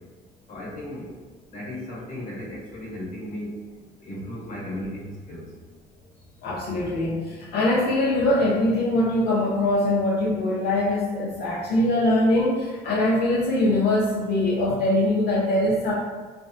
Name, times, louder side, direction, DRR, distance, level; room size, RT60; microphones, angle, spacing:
voice 1, 0.5-1.1 1.5-3.5 4.0-5.5, left 1 dB, 50° left, -5 dB, 1.1 m, -35 dB
voice 2, 6.4-15.9, left 1 dB, 70° left, -6 dB, 0.6 m, -22 dB
3.3 x 2.1 x 2.6 m, 1.4 s
cardioid pair, 110°, 17 cm